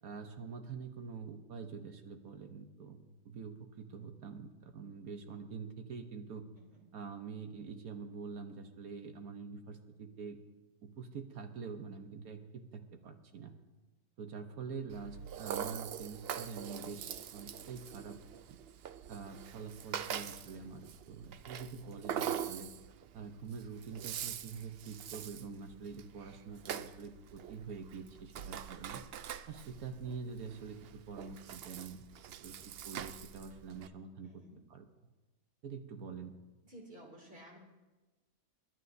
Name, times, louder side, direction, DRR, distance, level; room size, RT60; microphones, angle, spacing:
voice 1, 0.0-6.4 6.9-10.4 10.8-13.5 14.2-18.2 18.5-18.6 19.1-22.7 23.1-29.0 29.5-30.8 31.1-34.4 34.7-34.9 35.6-36.3, right 5 dB, 70° right, 6 dB, 1.4 m, -46 dB
voice 2, 6.6-6.9 34.2-34.6 36.6-37.6, right 1 dB, 35° right, -1 dB, 3.0 m, -54 dB
Rattle (instrument), 14.9-33.9, right 9 dB, 90° right, 0.5 m, -44 dB
30.0 x 11.0 x 2.7 m, 1.2 s
omnidirectional pair, 1.6 m